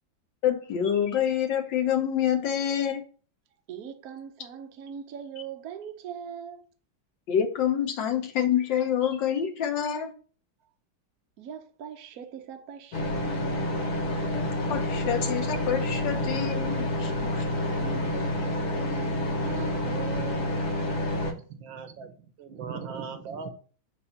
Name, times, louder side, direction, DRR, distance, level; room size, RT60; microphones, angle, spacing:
voice 1, 0.4-3.0 7.3-10.1 14.3-14.4 14.7-17.4, left 9 dB, 70° left, 1.6 m, -27 dB
voice 2, 3.7-6.6 11.4-13.8 17.6-20.6, right 8 dB, 60° right, 1.1 m, -41 dB
sound 1, 12.9-21.3, left 1 dB, 55° left, 1.4 m, -28 dB
voice 3, 21.4-23.5, right 5 dB, 80° right, 1.6 m, -39 dB
6.8 x 2.7 x 5.5 m
omnidirectional pair, 2.1 m